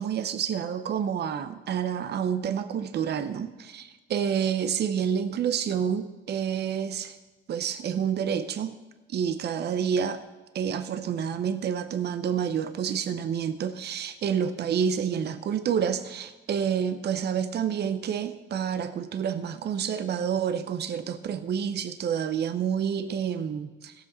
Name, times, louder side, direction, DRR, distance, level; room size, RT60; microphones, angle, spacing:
voice 1, 0.0-7.2 7.5-8.7 9.1-10.2 10.5-23.9, right 8 dB, 55° right, 11 dB, 0.7 m, -28 dB
17.0 x 7.6 x 4.2 m, 1.2 s
cardioid pair, 90°, 20 cm